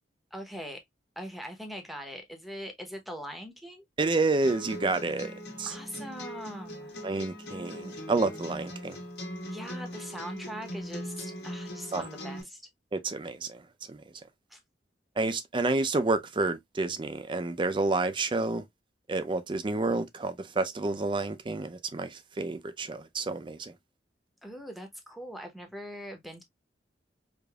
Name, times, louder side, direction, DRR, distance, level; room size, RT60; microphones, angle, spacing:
voice 1, 0.3-0.8 1.2-3.9 5.6-7.0 9.5-12.6 14.5-14.6 24.4-26.4, equal, ahead, 0.8 m, -41 dB
voice 2, 4.0-5.7 7.0-9.0 11.9-12.1 12.9-14.0 15.2-18.6 19.1-23.7, right 3 dB, 30° right, 0.5 m, -29 dB
sound 1, 4.4-12.4, equal, 70° left, 1.5 m, -40 dB
4.9 x 2.6 x 2.2 m
head